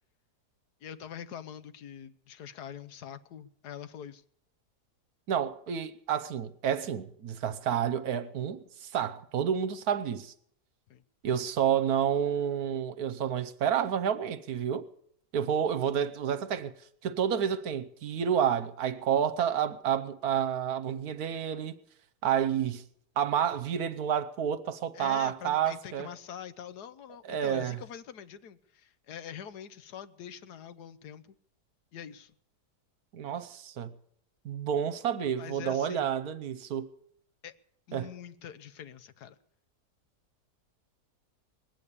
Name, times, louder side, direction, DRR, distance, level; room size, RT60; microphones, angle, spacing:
voice 1, 0.8-4.2 10.9-11.0 24.9-31.2 31.9-32.3 35.4-36.2 37.4-37.5 37.9-39.4, left 9 dB, 75° left, 1.4 m, -44 dB
voice 2, 5.3-10.3 11.2-14.9 15.3-16.7 17.0-21.8 22.2-22.8 23.2-26.1 27.3-27.8 33.1-33.9 34.4-36.9 37.9-38.1, right 8 dB, 70° right, 1.3 m, -29 dB
20.0 x 8.4 x 8.6 m
omnidirectional pair, 1.7 m